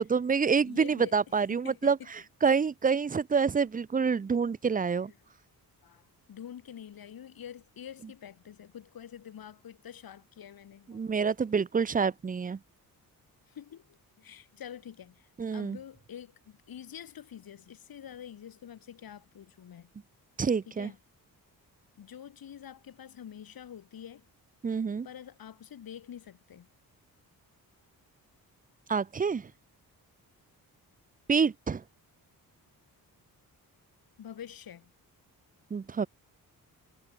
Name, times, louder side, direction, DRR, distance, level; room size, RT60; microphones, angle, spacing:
voice 1, 0.0-5.1 10.9-12.6 15.4-15.8 20.4-20.9 24.6-25.1 28.9-29.5 31.3-31.8 35.7-36.1, right 5 dB, 25° right, 0.6 m, -27 dB
voice 2, 0.6-2.1 5.8-11.0 13.5-19.9 20.7-21.0 22.0-24.2 25.0-26.7 34.2-34.9, left 9 dB, 70° left, 6.5 m, -47 dB
cardioid pair, 120°, 37 cm